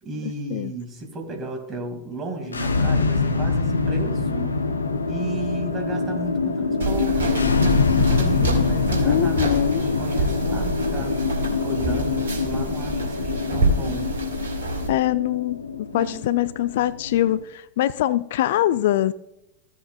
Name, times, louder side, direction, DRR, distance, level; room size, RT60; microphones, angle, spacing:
voice 1, 0.0-4.6 5.1-7.7 8.1-11.1 11.5-14.2 15.9-16.2, right 2 dB, 25° right, 3 dB, 2.4 m, -34 dB
sound 1, 2.4-17.4, left 4 dB, 75° left, 0.7 m, -24 dB
sound 2, 6.8-14.9, right 2 dB, 65° right, 2.1 m, -27 dB
voice 2, 9.0-9.8 14.9-19.1, left 13 dB, 55° left, 17 dB, 0.3 m, -23 dB
15.0 x 7.4 x 2.4 m, 0.86 s
figure-of-eight pair, 90°, 0 cm